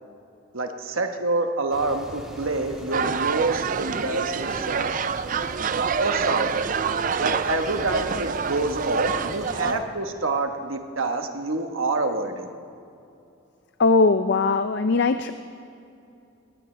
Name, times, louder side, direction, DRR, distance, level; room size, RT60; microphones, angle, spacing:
voice 1, 0.5-5.0 6.0-6.6 7.2-12.5, right 3 dB, 80° right, 5 dB, 1.2 m, -27 dB
sound 1, 1.7-9.8, equal, 5° right, 1.7 m, -41 dB
sound 2, 2.9-9.7, right 6 dB, 40° right, 0.4 m, -27 dB
voice 2, 13.8-15.3, left 4 dB, 55° left, 10 dB, 0.4 m, -20 dB
20.5 x 19.0 x 3.3 m, 2.6 s
head